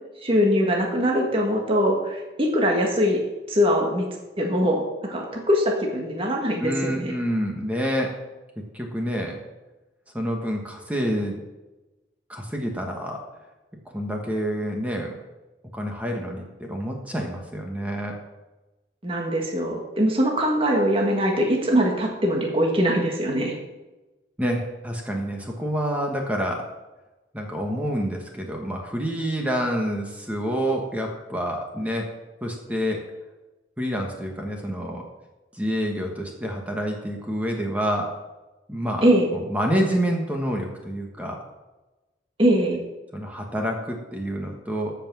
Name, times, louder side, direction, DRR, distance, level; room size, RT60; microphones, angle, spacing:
voice 1, 0.2-3.2 3.5-4.1 4.4-4.8 5.1-7.1 19.0-23.5 39.0-39.3 42.4-42.8, equal, 30° right, 0 dB, 1.8 m, -22 dB
voice 2, 6.6-8.1 8.7-9.4 10.1-11.4 12.3-13.2 13.9-15.1 15.7-18.2 24.4-26.6 27.3-32.1 32.4-33.0 33.8-35.0 35.5-38.1 38.7-39.1 39.5-41.4 43.1-44.9, equal, 10° right, 1 dB, 1.4 m, -27 dB
14.5 x 5.8 x 6.2 m, 1.1 s
head